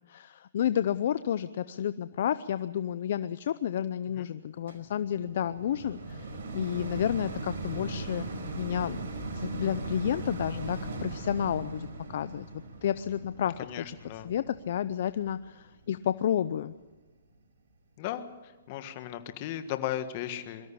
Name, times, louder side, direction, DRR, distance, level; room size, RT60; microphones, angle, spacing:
voice 1, 0.1-8.3 8.6-12.5 12.8-13.8 14.1-16.8, left 10 dB, 55° left, 14 dB, 0.6 m, -31 dB
sound 1, 4.7-15.9 16.5-16.6, right 2 dB, 60° right, 4.9 m, -39 dB
voice 2, 13.6-14.3 18.0-18.3 18.7-20.7, left 12 dB, 35° left, 9 dB, 1.6 m, -36 dB
23.5 x 13.5 x 8.6 m, 1.3 s
hypercardioid pair, 155°, 0 cm